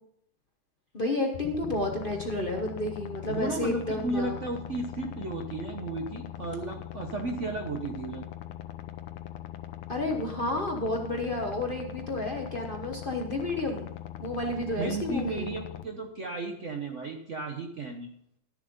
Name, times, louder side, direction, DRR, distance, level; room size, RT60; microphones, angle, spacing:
voice 1, 0.9-4.4 9.9-13.9 14.2-15.5, left 1 dB, 35° left, 2 dB, 1.0 m, -31 dB
sound 1, 1.3-15.8, left 12 dB, 85° left, 1.5 m, -41 dB
voice 2, 3.3-8.2 14.8-18.1, right 2 dB, 50° right, 4 dB, 0.9 m, -34 dB
12.5 x 7.3 x 5.3 m, 0.71 s
omnidirectional pair, 2.2 m